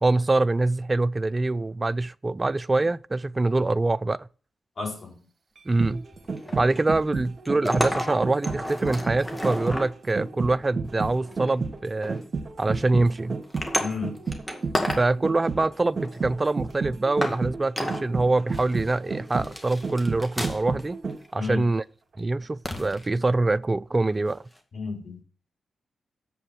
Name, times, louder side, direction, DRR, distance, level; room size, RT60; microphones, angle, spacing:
voice 1, 0.0-4.3 5.7-6.0 6.5-12.2 12.6-13.4 15.0-21.0 21.3-21.8 22.2-24.4, right 2 dB, 30° right, 0.4 m, -24 dB
voice 2, 4.8-5.2 13.8-14.1 21.3-21.6 24.7-25.2, left 4 dB, 55° left, 4.6 m, -32 dB
sound 1, 5.6-21.4 21.8-21.9, right 4 dB, 50° right, 1.5 m, -32 dB
sound 2, 6.1-7.0 7.5-9.9 10.8-11.5 12.0-12.3 12.7-12.9 13.4-15.1 15.4-16.2 16.7-16.8 17.2-17.4 17.8-18.1 18.5-18.9 19.3-20.8 21.1-21.3 22.6-23.1 24.6-24.7, left 1 dB, 15° left, 2.0 m, -32 dB
7.7 x 7.1 x 6.2 m
supercardioid pair, 40°, 0 cm